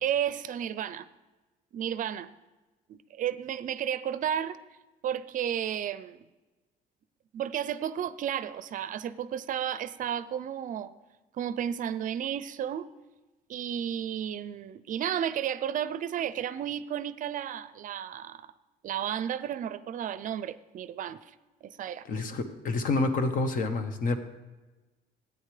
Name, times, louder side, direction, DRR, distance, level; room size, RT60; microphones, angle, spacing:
voice 1, 0.0-1.1 1.7-2.3 2.9-4.6 5.0-6.3 7.3-10.9 11.3-12.9 13.5-18.5 18.8-21.3 21.6-22.0, right 9 dB, 50° right, 15 dB, 0.5 m, -32 dB
voice 2, 22.1-24.2, left 3 dB, 55° left, 8 dB, 1.1 m, -28 dB
14.5 x 9.0 x 3.3 m, 1.2 s
cardioid pair, 110°, 17 cm